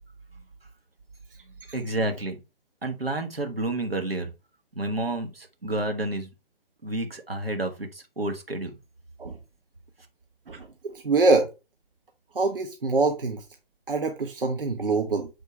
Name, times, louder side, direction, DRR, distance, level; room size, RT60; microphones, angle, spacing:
voice 1, 1.7-2.4 2.8-4.3 4.7-6.3 6.8-8.7, right 2 dB, 85° right, 1.6 m, -30 dB
voice 2, 10.5-11.5 12.3-13.4 13.9-15.3, right 3 dB, 70° right, 1.2 m, -24 dB
6.6 x 4.4 x 3.3 m
figure-of-eight pair, 135°, 29 cm